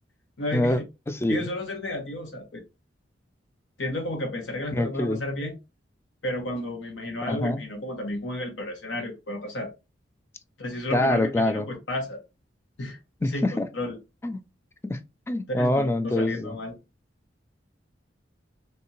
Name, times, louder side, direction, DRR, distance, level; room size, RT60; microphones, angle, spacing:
voice 1, 0.4-0.8 1.3-2.6 3.8-5.6 6.2-9.7 10.6-12.2 12.8-13.0 13.3-14.0 15.5-16.7, left 1 dB, 90° left, 1.0 m, -32 dB
voice 2, 1.1-1.5 4.7-5.2 7.3-7.6 10.9-11.7 13.2-13.7 14.2-14.4 14.8-16.6, left 1 dB, 15° left, 0.4 m, -25 dB
3.5 x 2.8 x 2.8 m
head